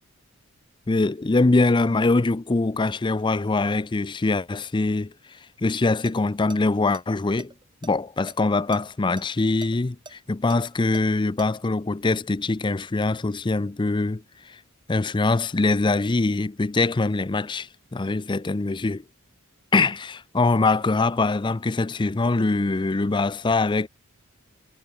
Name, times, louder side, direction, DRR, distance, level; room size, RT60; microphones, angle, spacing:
voice 1, 0.9-7.5 7.8-14.6 14.9-19.0 19.7-23.9, left 3 dB, 20° left, 0.5 m, -23 dB
sound 1, 6.0-6.2 6.5-6.6 6.9-8.4 8.7-8.8 9.2-11.5, right 3 dB, 20° right, 2.8 m, -42 dB
head